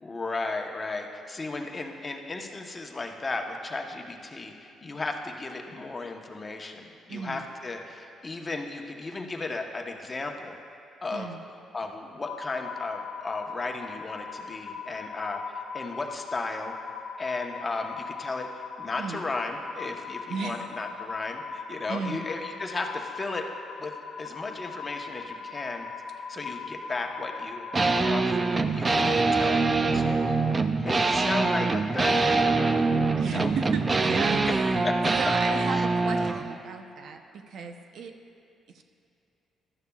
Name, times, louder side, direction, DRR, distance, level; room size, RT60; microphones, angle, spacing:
voice 1, 0.0-10.6 11.0-11.3 11.7-16.7 17.2-23.5 23.8-23.9 24.2-25.9 26.3-27.6 27.9-30.3 30.7-32.9 33.3-33.5 34.8-35.2 35.7-35.9, left 3 dB, 30° left, 3 dB, 1.0 m, -35 dB
voice 2, 7.1-7.4 11.1-11.4 19.0-19.2 20.3-20.6 21.9-22.2 33.2-34.9 35.2-38.1 38.7-38.8, right 5 dB, 70° right, 6 dB, 0.7 m, -34 dB
sound 1, 12.2-28.3, left 5 dB, 55° left, 1.1 m, -39 dB
sound 2, 27.7-36.4, right 3 dB, 30° right, 0.5 m, -24 dB
15.5 x 12.0 x 2.4 m, 2.5 s
cardioid pair, 90°, 0 cm